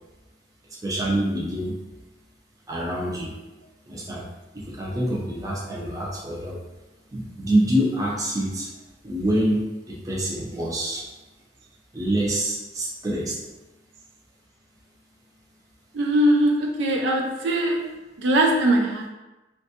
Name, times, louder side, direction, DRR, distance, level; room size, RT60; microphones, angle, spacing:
voice 1, 0.7-1.7 2.7-3.4 3.9-4.2 4.5-6.6 7.1-8.7 9.0-11.1 11.9-13.4, right 1 dB, 20° right, -4 dB, 0.5 m, -26 dB
voice 2, 15.9-17.9 18.2-19.1, right 1 dB, 70° right, 1 dB, 0.4 m, -21 dB
3.5 x 2.3 x 2.7 m, 1.1 s
head